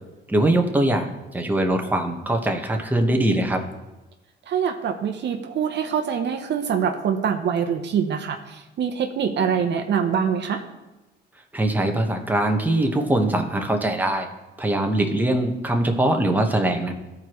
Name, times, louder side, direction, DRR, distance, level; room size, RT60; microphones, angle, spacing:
voice 1, 0.3-3.6 11.5-14.3 14.6-16.9, right 1 dB, 10° right, 3 dB, 1.1 m, -22 dB
voice 2, 4.5-10.6, right 7 dB, 60° right, 5 dB, 0.7 m, -24 dB
13.5 x 4.7 x 3.0 m, 1.0 s
cardioid pair, 90°, 20 cm